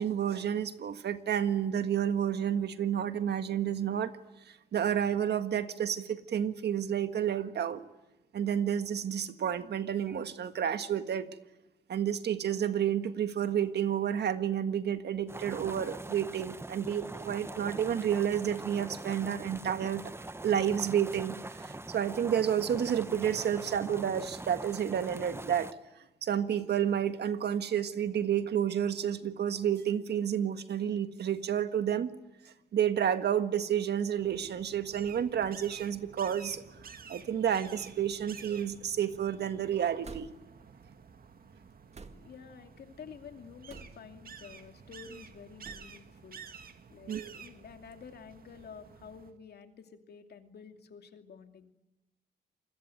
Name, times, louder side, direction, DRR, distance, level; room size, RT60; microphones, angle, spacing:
voice 1, 0.0-4.1 4.5-7.8 8.3-11.3 11.9-20.0 20.4-25.7 26.2-32.1 32.4-36.6 37.1-40.3 47.1-47.3, right 9 dB, 75° right, 10 dB, 1.6 m, -30 dB
sound 1, 15.3-25.7, right 2 dB, 15° right, 1.2 m, -43 dB
sound 2, 34.2-49.3, right 6 dB, 55° right, 2.0 m, -51 dB
sound 3, 37.9-38.4 40.0-40.6 41.9-42.5 43.7-44.2 45.6-46.0, right 4 dB, 40° right, 2.0 m, -51 dB
voice 2, 42.1-46.4 46.9-51.7, left 6 dB, 65° left, 6 dB, 2.7 m, -50 dB
27.5 x 22.0 x 9.3 m, 0.95 s
cardioid pair, 95°, 18 cm